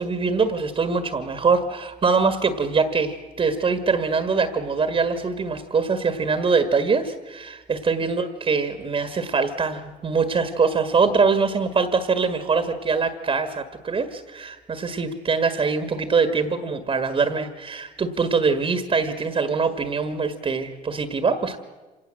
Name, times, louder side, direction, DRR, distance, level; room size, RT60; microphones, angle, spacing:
voice 1, 0.0-21.6, right 4 dB, 35° right, 9 dB, 1.8 m, -23 dB
26.0 x 18.0 x 7.7 m, 1.2 s
cardioid pair, 110°, 17 cm